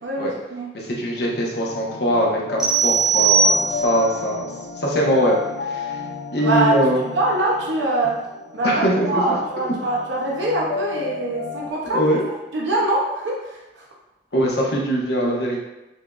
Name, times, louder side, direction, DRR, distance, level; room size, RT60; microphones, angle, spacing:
voice 1, 0.0-0.7 6.4-6.7 7.0-8.1 8.5-12.0 12.5-13.8, right 2 dB, 80° right, -3 dB, 0.7 m, -23 dB
voice 2, 0.7-4.5 4.8-5.4 5.6-6.0 6.3-7.0 8.6-9.4 11.9-12.2 14.3-15.6, equal, 60° left, -3 dB, 0.9 m, -22 dB
sound 1, 0.9-11.7, left 5 dB, 85° left, 0.5 m, -33 dB
sound 2, 2.6-4.1, right 5 dB, 5° right, 0.4 m, -19 dB
6.5 x 2.5 x 2.3 m, 1.0 s
head